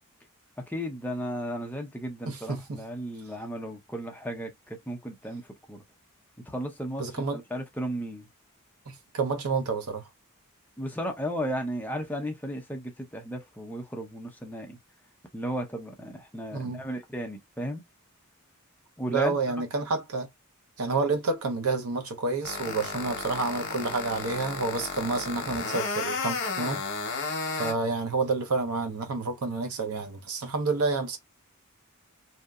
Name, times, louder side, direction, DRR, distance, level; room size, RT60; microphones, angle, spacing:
voice 1, 0.7-5.8 6.4-8.3 10.8-14.8 15.3-17.8 19.0-19.4, equal, 10° left, 0.6 m, -34 dB
voice 2, 2.3-2.8 7.0-7.4 8.9-10.1 16.5-16.8 19.1-20.3 20.8-26.8 27.2-31.2, right 3 dB, 80° right, 0.7 m, -29 dB
sound 1, 22.4-27.7, left 4 dB, 60° left, 0.9 m, -32 dB
2.8 x 2.5 x 2.3 m
head